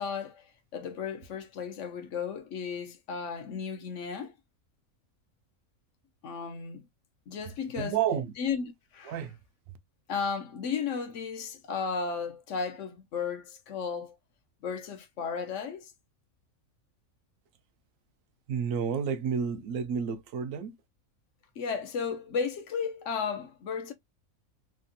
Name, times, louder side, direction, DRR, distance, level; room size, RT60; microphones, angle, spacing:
voice 1, 0.0-4.3 6.2-6.9 7.3-8.0 8.4-9.2 10.1-14.2 14.6-15.9 21.6-23.9, left 6 dB, 60° left, 1.0 m, -34 dB
voice 2, 7.8-8.3 9.0-9.4 9.7-9.8 18.5-20.8, right 7 dB, 70° right, 0.9 m, -30 dB
3.4 x 2.3 x 2.6 m
omnidirectional pair, 1.5 m